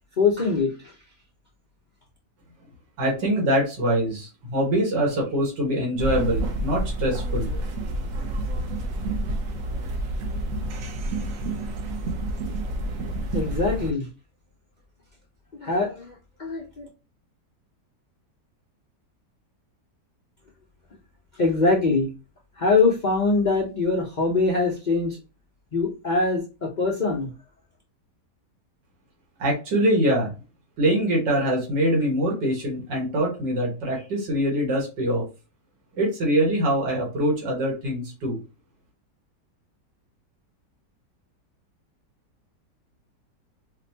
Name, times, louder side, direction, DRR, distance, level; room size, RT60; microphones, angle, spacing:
voice 1, 0.2-0.9 13.3-14.1 15.6-16.9 21.4-22.1 22.6-25.2 25.7-27.3, left 3 dB, 65° left, -1 dB, 0.4 m, -23 dB
voice 2, 3.0-7.5 29.4-30.3 30.8-35.3 35.9-38.4, right 1 dB, 90° right, -2 dB, 2.0 m, -24 dB
sound 1, 6.0-13.9, right 1 dB, 60° right, 1.0 m, -29 dB
5.0 x 2.2 x 2.7 m, 0.32 s
omnidirectional pair, 1.8 m